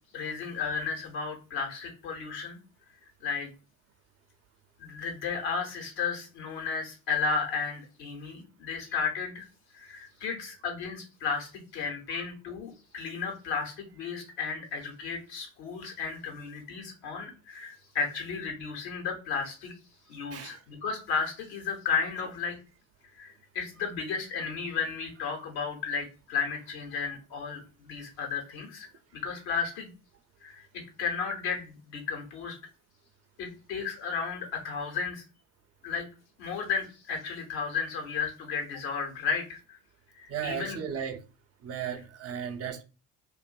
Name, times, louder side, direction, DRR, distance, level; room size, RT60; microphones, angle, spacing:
voice 1, 0.1-2.6 3.2-3.5 4.8-9.5 9.7-19.7 20.1-22.6 23.2-28.9 29.1-29.9 30.4-30.7 31.0-32.6 33.4-35.2 35.8-36.1 36.4-39.8 40.1-40.8, left 5 dB, 70° left, 1.1 m, -33 dB
voice 2, 40.3-41.2 41.6-42.8, right 8 dB, 40° right, 0.5 m, -35 dB
2.5 x 2.5 x 2.3 m
hypercardioid pair, 60°, 40 cm